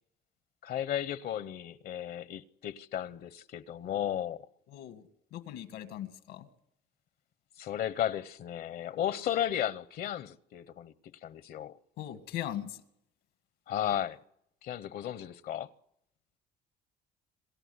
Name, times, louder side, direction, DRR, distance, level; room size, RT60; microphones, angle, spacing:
voice 1, 0.6-4.4 7.6-10.9 11.2-11.7 13.7-14.2 14.6-15.7, left 10 dB, 65° left, 0.8 m, -34 dB
voice 2, 4.7-5.0 5.3-6.5 12.0-12.8, left 11 dB, 90° left, 1.9 m, -39 dB
27.0 x 13.0 x 9.6 m
cardioid pair, 110°, 17 cm